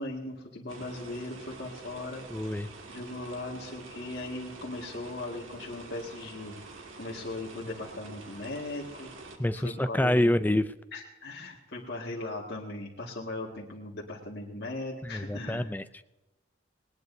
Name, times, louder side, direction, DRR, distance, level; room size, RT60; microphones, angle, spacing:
voice 1, 0.0-2.2 2.9-6.6 7.0-9.1 9.5-10.3 10.9-15.7, left 2 dB, 55° left, -3 dB, 2.0 m, -38 dB
sound 1, 0.7-9.4, right 3 dB, 80° right, 2.2 m, -47 dB
voice 2, 2.3-2.7 9.4-10.7 15.0-16.0, left 1 dB, 10° left, 12 dB, 0.4 m, -27 dB
19.5 x 19.5 x 2.7 m, 1.0 s
head